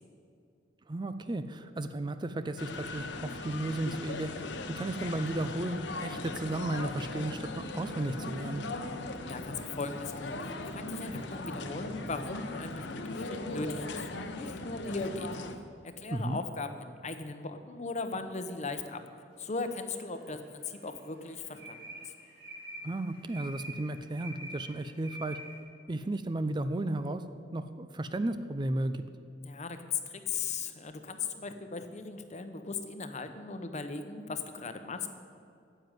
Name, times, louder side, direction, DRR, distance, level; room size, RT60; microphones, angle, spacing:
voice 1, 0.9-4.3 4.7-8.6 16.1-16.4 22.8-25.4 25.9-27.2 27.5-29.0, right 2 dB, 25° right, 11 dB, 0.4 m, -34 dB
sound 1, 2.6-15.6, left 2 dB, 70° left, 1.0 m, -39 dB
voice 2, 9.2-15.3 15.8-19.0 19.4-21.8 22.0-22.1 29.4-35.1, left 4 dB, 40° left, 8 dB, 0.9 m, -38 dB
sound 2, 19.6-20.3 20.7-25.6, right 1 dB, 80° right, 2.8 m, -46 dB
9.9 x 7.7 x 9.2 m, 2.4 s
head